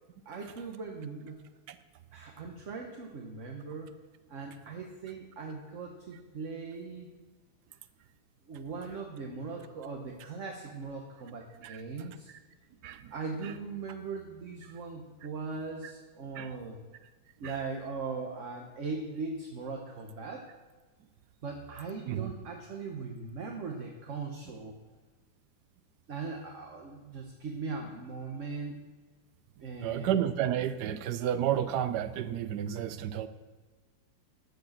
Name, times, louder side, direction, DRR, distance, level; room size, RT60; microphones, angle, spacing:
voice 1, 0.2-1.4 2.1-3.9 4.3-7.1 8.5-12.3 13.1-16.8 17.4-20.4 21.4-24.7 26.1-28.8 29.6-30.1, right 4 dB, 45° right, 1 dB, 1.3 m, -39 dB
voice 2, 11.6-12.1 12.8-13.1 13.4-13.5 14.6-14.7 15.8-15.9 16.3-16.5 17.4-17.5 22.1-22.3 29.8-33.3, right 10 dB, 70° right, 12 dB, 1.2 m, -32 dB
13.0 x 6.8 x 6.6 m, 1.3 s
omnidirectional pair, 2.1 m